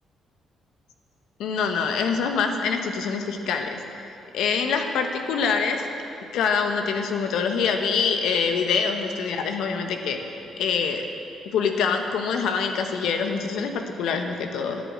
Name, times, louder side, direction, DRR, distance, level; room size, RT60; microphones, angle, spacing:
voice 1, 1.4-4.0 4.3-5.9 6.3-11.0 11.4-14.8, left 5 dB, 80° left, 5 dB, 1.1 m, -25 dB
12.0 x 7.2 x 8.7 m, 2.7 s
cardioid pair, 90°, 0 cm